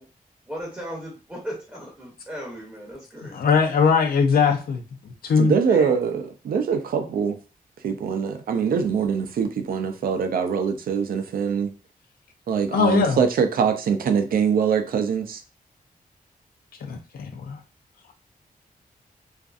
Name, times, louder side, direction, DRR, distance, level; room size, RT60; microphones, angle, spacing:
voice 1, 0.5-3.4 5.7-5.9, equal, 10° right, 0.6 m, -36 dB
voice 2, 3.3-4.8 5.2-5.6 12.7-13.2 16.8-17.6, left 5 dB, 85° left, 0.5 m, -20 dB
voice 3, 5.4-7.4 7.8-11.7 12.5-15.4, right 6 dB, 80° right, 0.4 m, -23 dB
2.5 x 2.4 x 2.3 m
wide cardioid pair, 180°, 15 cm